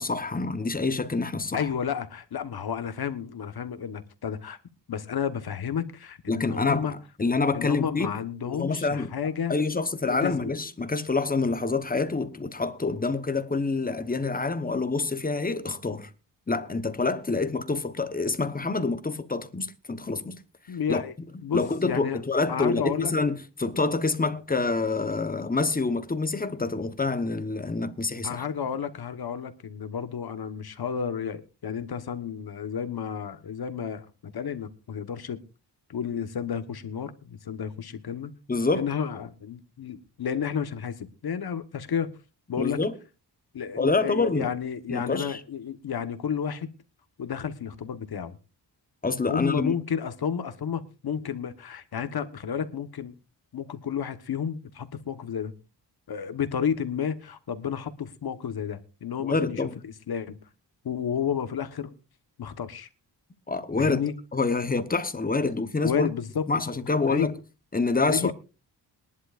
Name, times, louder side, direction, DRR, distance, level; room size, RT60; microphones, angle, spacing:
voice 1, 0.0-1.7 6.3-8.1 8.5-9.1 9.5-16.1 16.5-20.4 20.9-21.0 21.5-28.4 38.5-38.9 42.6-42.9 43.8-44.5 44.9-45.4 49.0-49.7 59.2-59.7 63.5-64.0 64.3-66.1 66.5-67.3 67.7-68.3, left 3 dB, 20° left, 1.0 m, -27 dB
voice 2, 1.5-4.6 4.9-6.9 7.5-9.5 10.1-10.5 20.7-21.1 21.4-22.2 22.5-23.1 28.2-34.1 34.3-35.4 35.9-38.3 38.7-42.1 42.5-42.8 43.5-46.7 47.2-48.4 49.3-53.1 53.5-55.5 56.1-59.6 60.1-60.4 60.8-61.9 62.4-62.9 63.8-64.1 65.8-66.5 67.1-67.3 68.1-68.3, left 7 dB, 60° left, 1.3 m, -31 dB
22.0 x 11.0 x 2.5 m
wide cardioid pair, 135°, 42 cm